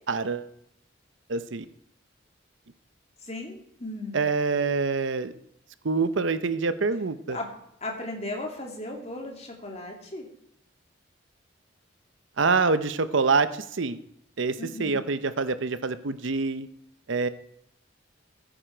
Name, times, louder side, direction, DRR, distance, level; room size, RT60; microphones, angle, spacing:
voice 1, 0.1-0.5 1.3-1.7 4.1-5.3 5.8-7.4 12.4-14.0 14.4-16.7 17.1-17.3, right 4 dB, 75° right, 13 dB, 0.7 m, -26 dB
voice 2, 3.2-4.2 7.3-7.5 7.8-10.3 14.6-15.0, left 2 dB, 35° left, 1 dB, 2.6 m, -36 dB
15.0 x 8.9 x 4.5 m, 0.73 s
head